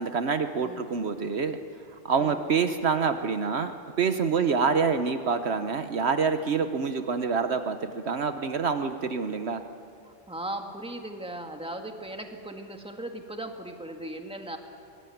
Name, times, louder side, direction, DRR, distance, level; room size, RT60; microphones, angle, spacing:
voice 1, 0.0-1.6 2.0-9.6, right 5 dB, 65° right, 8 dB, 1.2 m, -26 dB
voice 2, 10.0-14.6, right 1 dB, 5° right, 4 dB, 1.8 m, -38 dB
23.5 x 19.5 x 9.3 m, 2.4 s
omnidirectional pair, 1.2 m